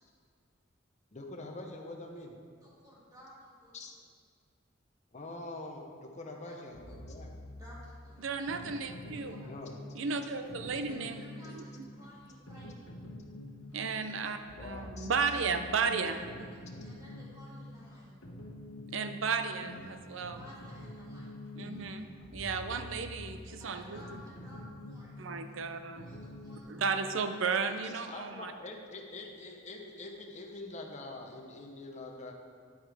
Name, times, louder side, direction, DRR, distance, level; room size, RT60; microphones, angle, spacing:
voice 1, 1.1-2.3 3.7-3.9 5.1-7.3 9.4-9.8 14.6-15.1 27.8-32.3, left 2 dB, 35° left, 1 dB, 0.9 m, -44 dB
voice 2, 2.6-3.7 6.3-6.6 6.8-7.3 7.6-8.4 9.3-9.6 10.8-12.9 16.8-18.3 20.3-21.4 23.5-25.2 25.9-26.9 27.2-27.8 29.4-29.5, equal, 20° right, -7 dB, 2.5 m, -55 dB
sound 1, 6.7-26.6, left 1 dB, 85° left, 1.2 m, -47 dB
voice 3, 8.2-9.4 9.9-11.9 13.7-16.3 18.9-20.4 21.6-24.0 25.2-26.1 26.7-28.5, right 5 dB, 70° right, 9 dB, 0.6 m, -34 dB
9.4 x 8.4 x 3.4 m, 2.1 s
head